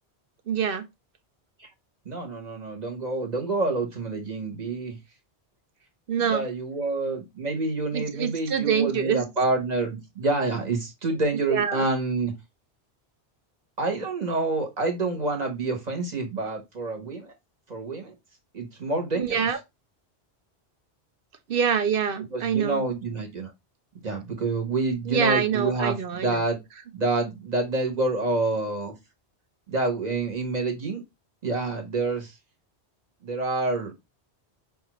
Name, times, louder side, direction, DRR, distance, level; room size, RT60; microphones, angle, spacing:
voice 1, 0.5-0.8 6.1-6.4 7.9-9.2 11.5-11.9 19.2-19.6 21.5-22.9 25.1-26.4, right 7 dB, 65° right, 0.7 m, -25 dB
voice 2, 2.0-5.0 6.3-12.3 13.8-17.3 17.7-18.1 18.5-19.4 22.3-23.5 24.0-26.6 26.9-28.9 29.7-31.0 31.4-32.4 33.2-33.9, right 3 dB, 40° right, 1.1 m, -27 dB
5.3 x 2.4 x 2.9 m
omnidirectional pair, 1.1 m